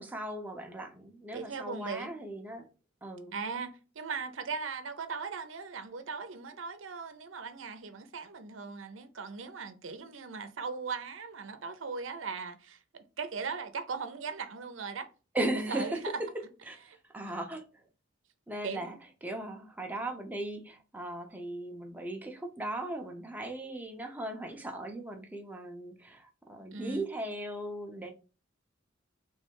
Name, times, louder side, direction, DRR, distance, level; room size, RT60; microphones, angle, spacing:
voice 1, 0.0-2.7 3.0-3.3 15.3-16.3 16.7-16.8 17.1-17.8 18.5-19.0 19.2-28.1, right 1 dB, 10° right, 0.7 m, -37 dB
voice 2, 1.3-2.1 3.3-12.8 13.2-15.1 15.7-16.1 18.6-19.0 26.7-27.1, right 5 dB, 80° right, 0.7 m, -38 dB
3.4 x 3.3 x 4.6 m
head